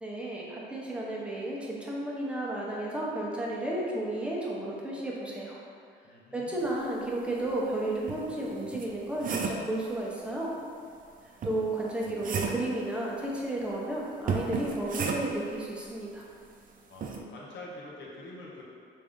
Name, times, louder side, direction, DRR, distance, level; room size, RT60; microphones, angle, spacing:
voice 1, 0.0-5.6 6.3-10.5 11.4-16.3, right 1 dB, 5° right, -5 dB, 0.7 m, -33 dB
voice 2, 6.0-6.8 16.9-18.6, left 2 dB, 65° left, -4 dB, 0.7 m, -46 dB
sound 1, 7.5-7.6 8.1-9.7 11.4-12.7 14.3-15.5 17.0-17.2, right 4 dB, 45° right, 0.4 m, -33 dB
3.4 x 2.6 x 3.5 m, 2.3 s
cardioid pair, 90°, 20 cm